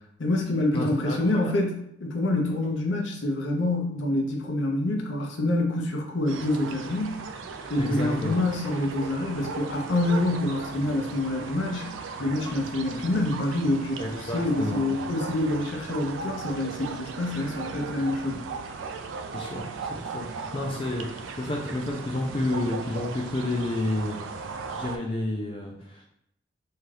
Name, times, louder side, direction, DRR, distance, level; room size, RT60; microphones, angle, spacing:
voice 1, 0.2-7.2 7.7-18.4, left 1 dB, 85° left, 1 dB, 0.6 m, -27 dB
voice 2, 0.7-1.5 7.8-8.4 14.0-14.8 19.3-19.6 19.9-20.3 20.5-26.0, left 2 dB, 30° left, -1 dB, 0.3 m, -30 dB
sound 1, 6.3-25.0, right 4 dB, 90° right, 0.3 m, -37 dB
2.7 x 2.3 x 3.2 m, 0.73 s
head